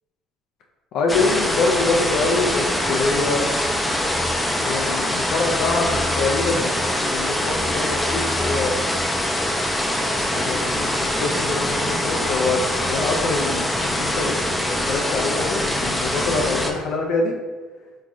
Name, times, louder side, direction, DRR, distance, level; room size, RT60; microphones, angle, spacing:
voice 1, 0.9-3.5 4.5-8.8 10.3-17.4, left 3 dB, 70° left, 0 dB, 0.4 m, -25 dB
sound 1, 1.1-16.7, left 1 dB, 10° left, 0.4 m, -23 dB
3.5 x 3.0 x 2.5 m, 1.3 s
supercardioid pair, 85°, 0 cm